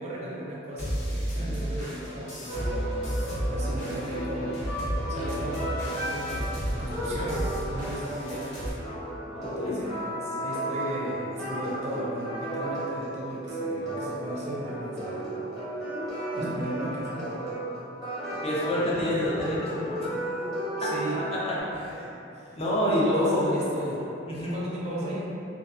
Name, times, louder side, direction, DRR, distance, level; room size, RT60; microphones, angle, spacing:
voice 1, 0.0-2.9 3.5-4.6 5.1-8.6 9.4-15.2 16.3-17.3 20.8-21.2 22.4-22.6 23.0-24.0 24.4-25.3, right 1 dB, 35° right, -5 dB, 0.4 m, -36 dB
sound 1, 0.8-8.7, equal, 85° left, 1.0 m, -33 dB
sound 2, 2.5-21.6, right 1 dB, ahead, 1.0 m, -34 dB
voice 2, 9.3-9.8 16.4-16.5 18.4-20.2 20.8-20.9 21.3-22.1 22.5-23.6 24.3-24.6, left 1 dB, 35° left, -7 dB, 0.5 m, -28 dB
2.6 x 2.4 x 2.3 m, 2.9 s
head